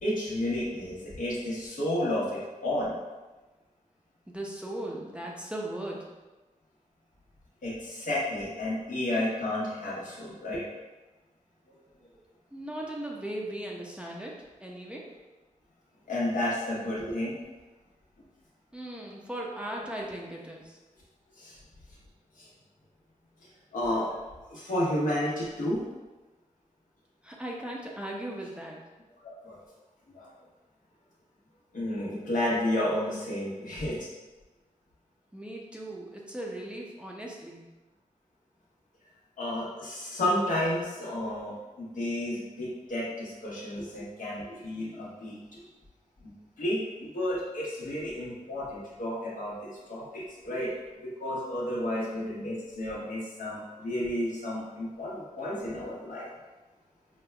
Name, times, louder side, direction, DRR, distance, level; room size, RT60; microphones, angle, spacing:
voice 1, 0.0-2.9 7.6-10.6 16.1-17.3 21.4-21.5 22.4-22.5 23.7-24.1 24.5-25.8 29.4-29.6 30.1-30.3 31.7-34.1 39.4-45.6 46.2-46.3 46.6-50.7 51.0-56.3, left 1 dB, 80° left, -6 dB, 1.1 m, -31 dB
voice 2, 4.3-6.1 12.5-15.1 18.7-20.8 27.2-28.8 35.3-37.7 51.9-52.3, right 1 dB, 10° right, -2 dB, 0.5 m, -38 dB
5.1 x 2.2 x 2.3 m, 1.2 s
wide cardioid pair, 110°, 14 cm